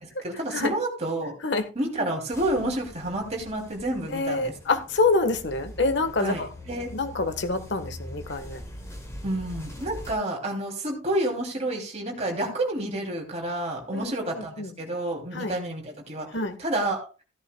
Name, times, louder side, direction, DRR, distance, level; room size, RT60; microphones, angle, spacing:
voice 1, 0.0-1.3 1.7-4.6 6.2-6.9 9.2-16.3 16.6-17.1, right 1 dB, 35° right, 3.0 m, -29 dB
sound 1, 2.3-10.1, left 1 dB, 15° left, 5.5 m, -42 dB
voice 2, 4.1-6.5 6.9-8.6 13.9-14.7 15.3-15.5 16.3-16.6, left 3 dB, 65° left, 1.4 m, -26 dB
15.5 x 11.0 x 2.3 m
head